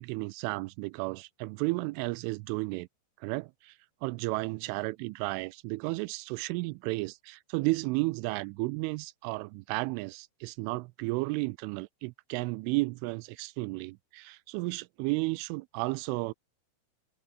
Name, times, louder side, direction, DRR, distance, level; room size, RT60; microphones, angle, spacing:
voice 1, 0.0-2.9 3.2-16.3, right 24 dB, 85° right, 3.0 m, -33 dB
omnidirectional pair, 5.6 m